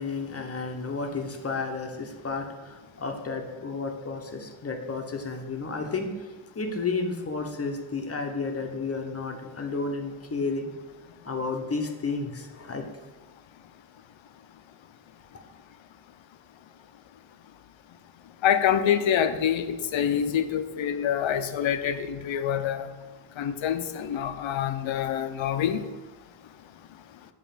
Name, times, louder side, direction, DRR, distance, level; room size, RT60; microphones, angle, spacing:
voice 1, 0.0-10.7 11.2-12.8, left 4 dB, 30° left, 4 dB, 0.8 m, -32 dB
voice 2, 18.4-22.9 23.4-25.8, left 9 dB, 70° left, 9 dB, 0.6 m, -26 dB
7.2 x 3.1 x 5.7 m, 1.2 s
wide cardioid pair, 110°, 48 cm